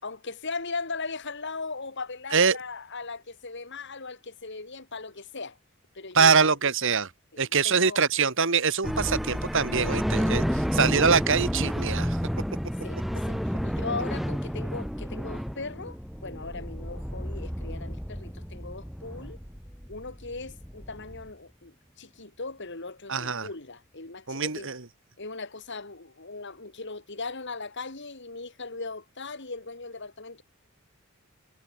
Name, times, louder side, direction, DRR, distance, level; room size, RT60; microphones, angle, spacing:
voice 1, 0.0-5.6 5.9-6.6 7.3-8.0 9.1-9.2 9.9-10.0 10.5-10.6 12.8-19.4 19.9-24.7 25.2-30.4, left 3 dB, 55° left, 2.8 m, -38 dB
voice 2, 6.1-7.1 7.4-12.2 23.1-23.5 24.3-24.8, right 5 dB, 60° right, 2.1 m, -24 dB
sound 1, 8.8-21.3, equal, ahead, 3.4 m, -31 dB
head